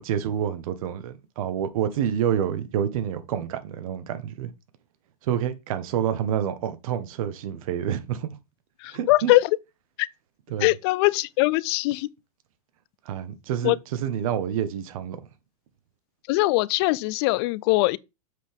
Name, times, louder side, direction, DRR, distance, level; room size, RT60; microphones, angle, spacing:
voice 1, 0.0-4.5 5.3-8.3 8.9-9.3 10.5-10.7 13.0-15.2, right 9 dB, 65° right, 1.4 m, -28 dB
voice 2, 8.8-9.5 10.0-10.1 10.6-12.1 13.6-13.8 16.3-18.0, left 20 dB, 45° left, 0.4 m, -21 dB
7.4 x 5.8 x 3.5 m
supercardioid pair, 145°, 19 cm